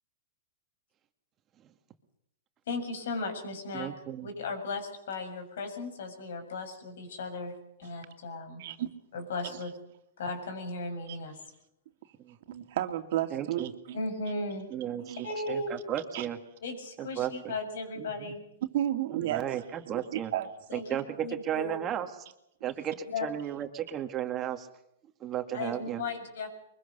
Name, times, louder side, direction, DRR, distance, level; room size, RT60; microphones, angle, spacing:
voice 1, 2.7-3.9 4.2-8.6 9.1-9.7 10.2-11.4 13.9-14.7 15.2-15.7 16.6-18.4 20.7-21.8 23.1-23.3 25.5-26.5, left 3 dB, 75° left, 6 dB, 7.3 m, -36 dB
voice 2, 3.7-4.3 12.2-12.4 13.3-13.7 14.7-15.2 15.5-16.4 17.0-17.5 18.0-18.3 19.1-20.3 20.7-22.1 22.6-24.7 25.2-26.0, right 10 dB, 25° right, 6 dB, 2.1 m, -34 dB
voice 3, 8.6-8.9 9.4-9.5 12.5-14.0 15.0-15.3 16.1-16.3 18.7-19.6 20.1-20.5, right 12 dB, 60° right, 7 dB, 2.5 m, -32 dB
23.5 x 22.0 x 6.8 m, 0.78 s
hypercardioid pair, 140°, 0 cm